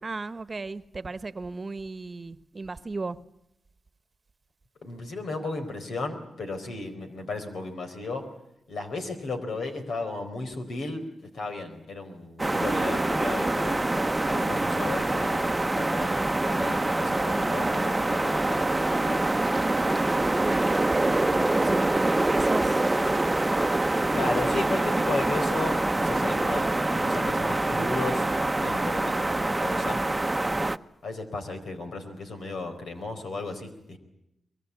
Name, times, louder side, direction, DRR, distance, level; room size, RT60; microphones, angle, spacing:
voice 1, 0.0-3.2 19.8-22.8 25.1-25.3, right 3 dB, 40° right, 14 dB, 1.2 m, -35 dB
voice 2, 4.8-8.3 8.7-11.1 11.3-13.8 14.3-15.4 15.7-19.3 24.1-28.3 28.6-30.0 31.0-34.0, left 3 dB, 75° left, 6 dB, 4.5 m, -35 dB
sound 1, 12.4-30.8, right 2 dB, 20° right, 0.9 m, -25 dB
23.5 x 22.5 x 8.4 m, 0.83 s
cardioid pair, 55°, 0 cm